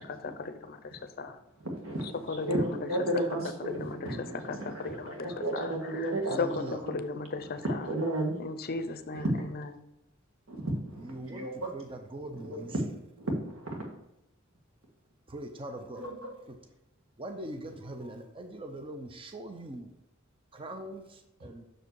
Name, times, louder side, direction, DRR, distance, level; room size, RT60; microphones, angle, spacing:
voice 1, 0.0-1.4 2.3-2.9 3.6-4.2 4.5-6.1 6.4-7.9 8.4-9.7, left 3 dB, 50° left, 10 dB, 0.6 m, -36 dB
voice 2, 1.6-2.1 2.4-6.4 7.8-8.3 9.1-9.4 10.5-11.7 12.3-12.8 13.2-13.8 16.0-16.3, right 1 dB, 80° right, 1 dB, 1.6 m, -33 dB
voice 3, 6.3-6.8 11.0-12.7 15.3-16.1 16.5-16.6 17.2-19.9 20.5-21.6, right 1 dB, 25° right, 5 dB, 0.6 m, -41 dB
6.2 x 4.8 x 4.7 m, 0.88 s
head